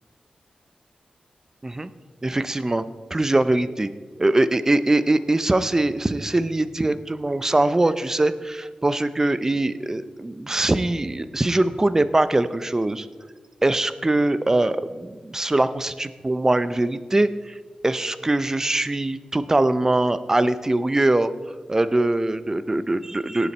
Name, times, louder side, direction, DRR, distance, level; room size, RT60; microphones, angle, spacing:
voice 1, 2.2-2.8 3.1-3.9 4.2-13.1 13.6-17.5 17.8-21.3 21.7-23.5, right 2 dB, 20° right, 13 dB, 0.6 m, -22 dB
18.5 x 7.0 x 4.4 m, 1.4 s
wide cardioid pair, 105°, 2 cm